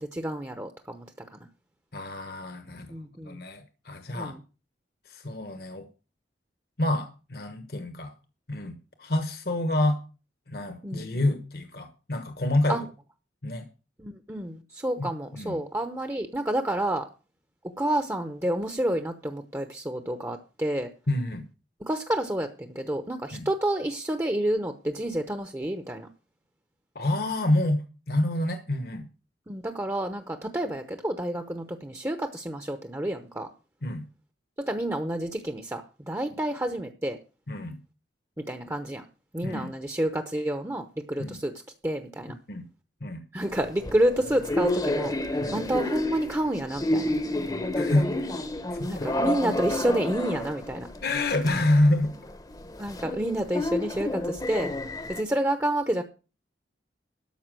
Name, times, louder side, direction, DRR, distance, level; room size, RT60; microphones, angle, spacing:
voice 1, 0.1-1.1 1.3-1.4 2.9-3.4 4.1-4.4 10.8-11.1 12.7-12.8 14.0-17.1 17.8-20.9 21.8-26.1 29.5-33.5 34.6-37.2 38.4-39.0 39.3-41.5 41.8-42.3 43.3-47.1 48.9-50.9 52.8-54.7 55.1-56.0, right 1 dB, 15° right, 7 dB, 0.8 m, -29 dB
voice 2, 1.9-2.9 3.2-4.3 5.1-5.8 6.8-8.1 8.5-10.0 10.5-12.8 13.4-13.7 15.0-15.6 21.1-21.4 23.3-23.5 26.9-29.1 33.8-34.0 37.5-37.8 39.4-39.7 41.2-41.4 42.5-42.6 43.0-43.2 45.4-45.6 47.8-48.1 48.7-49.1 51.0-52.1, left 1 dB, 55° left, 7 dB, 1.2 m, -27 dB
sound 1, 43.4-55.2, left 1 dB, 20° left, 0.8 m, -30 dB
12.5 x 5.7 x 7.6 m, 0.34 s
head